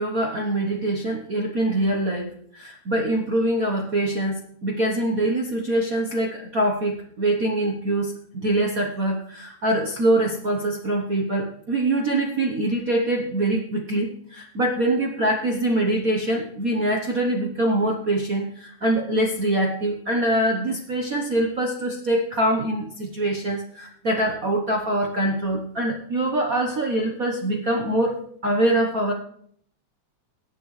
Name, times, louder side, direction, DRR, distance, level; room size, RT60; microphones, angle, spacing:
voice 1, 0.0-29.1, right 1 dB, 65° right, 1 dB, 0.8 m, -24 dB
22.0 x 8.6 x 3.2 m, 0.64 s
omnidirectional pair, 3.3 m